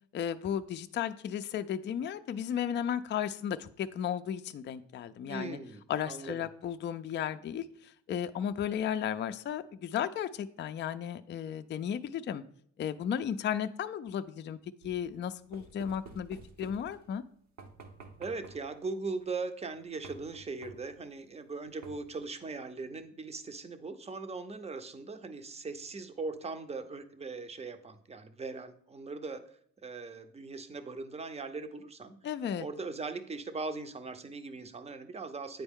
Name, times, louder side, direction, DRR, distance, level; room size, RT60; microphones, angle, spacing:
voice 1, 0.1-5.6 5.9-12.4 12.8-14.6 14.8-17.2 32.2-32.7, left 9 dB, 40° left, 9 dB, 0.4 m, -34 dB
voice 2, 5.3-6.5 18.2-29.4 29.8-32.2 32.6-35.6, right 3 dB, 20° right, 9 dB, 0.6 m, -40 dB
sound 1, 14.8-17.2 17.6-18.8 20.0-21.0 21.8-22.3, right 4 dB, 65° right, 1.0 m, -51 dB
9.0 x 4.4 x 3.6 m, 0.63 s
cardioid pair, 90°, 30 cm